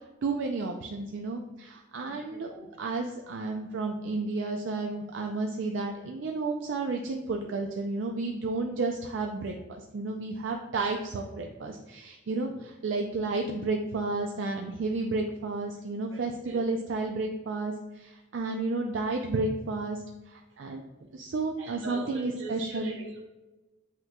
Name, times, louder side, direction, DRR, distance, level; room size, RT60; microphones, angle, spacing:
voice 1, 0.2-2.5 2.8-20.0 20.3-20.8 21.1-23.0, right 3 dB, 70° right, 2 dB, 0.4 m, -32 dB
voice 2, 2.1-2.7 7.4-7.5 12.3-12.6 16.1-16.6 21.6-23.3, right 2 dB, 85° right, 0 dB, 1.0 m, -43 dB
7.7 x 3.0 x 2.3 m, 1.1 s
head